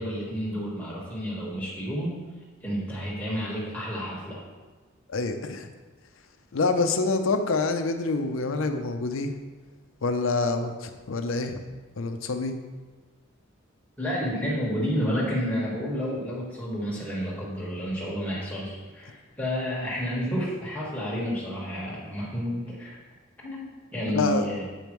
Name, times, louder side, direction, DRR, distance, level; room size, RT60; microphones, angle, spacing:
voice 1, 0.0-2.2 2.6-4.4 14.0-23.0 23.4-23.6 23.9-24.6, equal, 10° left, -6 dB, 1.5 m, -30 dB
voice 2, 5.1-5.7 6.5-9.3 10.0-11.6 12.0-12.5 24.1-24.5, left 3 dB, 70° left, 7 dB, 0.6 m, -26 dB
7.7 x 5.1 x 3.1 m, 1.3 s
head